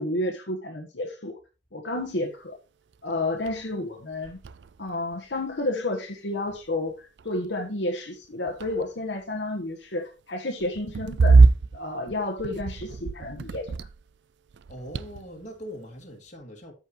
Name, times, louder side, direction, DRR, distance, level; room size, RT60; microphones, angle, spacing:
voice 1, 0.0-1.4 1.7-2.6 3.0-4.4 4.8-11.4 11.7-13.7, left 2 dB, 75° left, 1.3 m, -31 dB
sound 1, 2.9-3.0 3.4-3.7 4.0-5.7 6.5-6.9 7.2-7.5 8.2-9.2 10.6-14.2 14.5-15.5, right 3 dB, 70° right, 0.4 m, -24 dB
voice 2, 14.7-16.7, equal, 40° left, 2.2 m, -41 dB
13.5 x 5.4 x 3.1 m
head